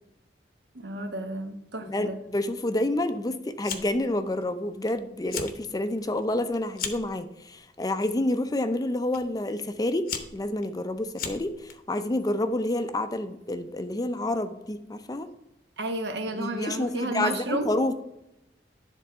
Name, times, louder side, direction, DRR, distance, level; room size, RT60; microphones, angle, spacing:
voice 1, 0.7-2.2 15.8-17.7, right 2 dB, 75° right, 6 dB, 1.0 m, -32 dB
voice 2, 1.8-15.3 16.3-17.9, left 1 dB, 20° left, 10 dB, 0.4 m, -29 dB
Fire, 3.6-4.1 4.4-4.9 5.2-5.6 6.0-7.1 7.9-8.3 9.1-9.2 9.8-11.7, left 7 dB, 55° left, 0.8 m, -36 dB
10.0 x 3.8 x 5.5 m, 0.86 s
head